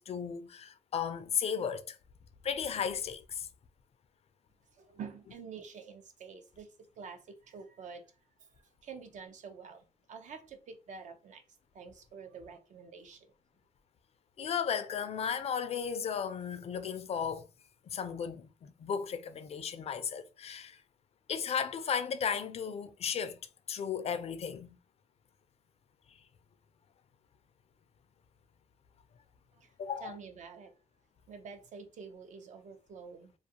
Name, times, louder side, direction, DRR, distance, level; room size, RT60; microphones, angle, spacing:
voice 1, 0.0-2.0 2.4-3.5 14.4-17.5 17.9-20.8 21.3-23.4 23.7-24.8 29.8-30.2, left 7 dB, 50° left, 0.4 m, -35 dB
voice 2, 4.7-8.1 8.4-11.4 11.7-13.3 29.6-29.7 30.0-30.8 31.3-33.3, right 6 dB, 65° right, 0.6 m, -48 dB
2.3 x 2.3 x 2.8 m
cardioid pair, 95°, 13 cm